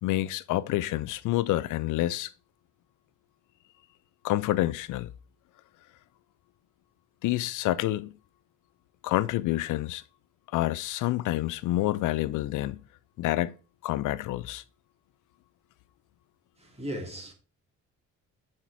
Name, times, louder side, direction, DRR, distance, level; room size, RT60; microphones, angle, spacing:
voice 1, 0.0-2.3 4.2-5.1 7.2-8.2 9.0-10.0 10.5-12.8 13.2-13.6 13.8-14.6, left 15 dB, 85° left, 0.5 m, -28 dB
voice 2, 16.6-17.3, equal, 20° right, 2.6 m, -37 dB
7.4 x 4.4 x 4.7 m
cardioid pair, 90°, 30 cm